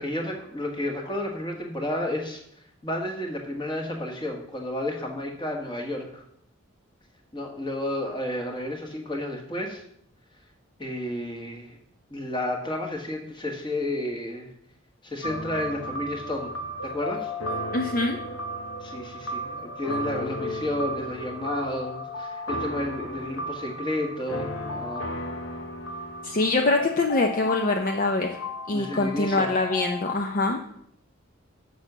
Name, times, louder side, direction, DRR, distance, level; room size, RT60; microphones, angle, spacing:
voice 1, 0.0-2.4 2.8-6.2 7.3-9.8 10.8-11.8 12.1-14.5 15.0-16.5 16.8-17.6 18.8-25.0 28.7-29.5, left 1 dB, 25° left, 1 dB, 1.5 m, -31 dB
sound 1, 15.2-30.1, left 1 dB, 90° left, 1.1 m, -34 dB
voice 2, 17.7-18.2 26.2-28.4 28.7-30.6, left 2 dB, 45° left, 4 dB, 0.6 m, -24 dB
6.7 x 6.4 x 6.1 m, 0.71 s
head